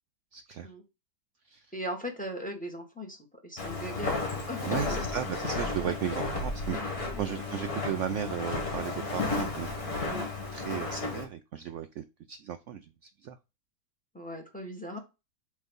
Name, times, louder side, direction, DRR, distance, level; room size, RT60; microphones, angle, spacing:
voice 1, 0.3-0.7 1.5-1.7 4.7-6.8 7.2-9.9 10.5-12.9 13.2-13.4, right 9 dB, 70° right, 9 dB, 0.7 m, -35 dB
voice 2, 1.7-3.2 3.4-5.0 5.8-6.0 7.2-7.3 10.0-10.3 14.1-15.0, equal, 5° left, 3 dB, 1.6 m, -38 dB
Walk footsteps, 3.6-11.3, left 3 dB, 60° left, 2.4 m, -33 dB
7.5 x 3.3 x 5.2 m, 0.27 s
omnidirectional pair, 1.8 m